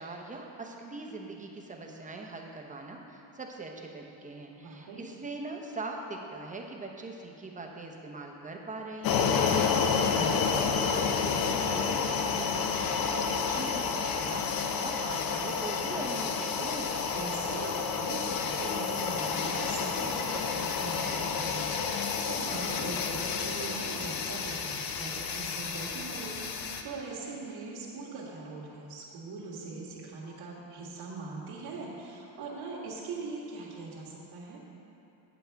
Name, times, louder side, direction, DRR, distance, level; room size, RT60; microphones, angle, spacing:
voice 1, 0.0-9.9 10.5-17.0, right 3 dB, 15° right, 1 dB, 0.7 m, -41 dB
voice 2, 4.5-5.1 10.0-10.6 17.1-34.6, right 3 dB, 85° right, -6 dB, 1.9 m, -41 dB
sound 1, 9.0-26.8, left 6 dB, 45° left, 0.7 m, -30 dB
8.1 x 8.1 x 4.6 m, 2.9 s
cardioid pair, 135°, 48 cm